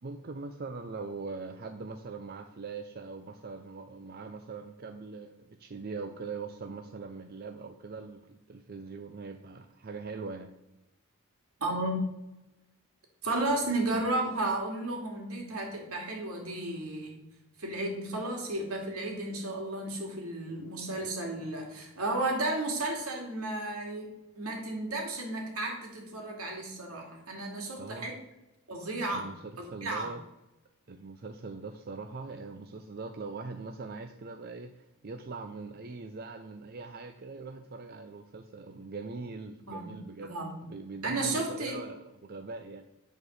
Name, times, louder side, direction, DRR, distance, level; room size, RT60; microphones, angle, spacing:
voice 1, 0.0-10.5 14.0-14.1 20.5-20.6 27.8-28.2 29.1-29.3 29.7-30.2 30.9-40.4 40.6-42.9, right 4 dB, 45° right, 6 dB, 0.5 m, -42 dB
voice 2, 11.6-12.0 13.2-17.1 17.6-24.1 24.3-28.1 28.7-29.3 29.6-30.1 39.6-39.9 40.2-40.6 41.0-41.8, right 2 dB, 75° right, 1 dB, 2.5 m, -33 dB
9.7 x 4.5 x 6.3 m, 0.97 s
head